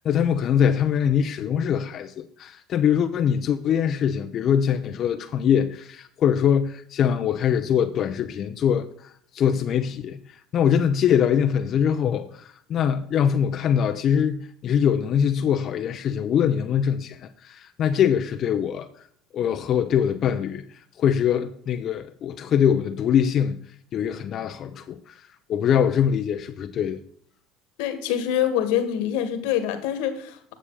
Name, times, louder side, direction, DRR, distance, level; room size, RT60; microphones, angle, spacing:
voice 1, 0.0-8.9 9.3-10.2 10.5-18.9 19.3-20.6 21.0-23.6 23.9-25.1 25.5-27.0, left 8 dB, 50° left, 0.7 m, -23 dB
voice 2, 27.8-30.5, left 10 dB, 80° left, 1.8 m, -25 dB
10.0 x 6.8 x 4.8 m
supercardioid pair, 105°, 0 cm